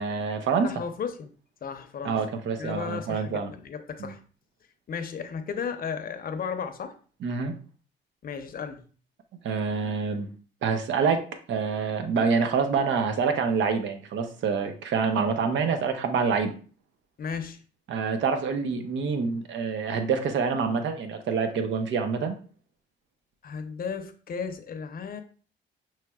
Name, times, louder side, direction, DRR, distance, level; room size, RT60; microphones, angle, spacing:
voice 1, 0.0-0.7 2.0-3.5 4.0-4.1 7.2-7.5 9.4-10.3 10.6-16.5 17.9-22.3, right 5 dB, 70° right, 7 dB, 0.7 m, -26 dB
voice 2, 0.6-1.3 1.6-2.2 2.6-4.2 4.9-6.9 8.2-8.8 17.2-17.6 23.4-25.2, left 6 dB, 45° left, 8 dB, 0.7 m, -34 dB
5.7 x 3.1 x 2.3 m, 0.40 s
cardioid pair, 90°, 20 cm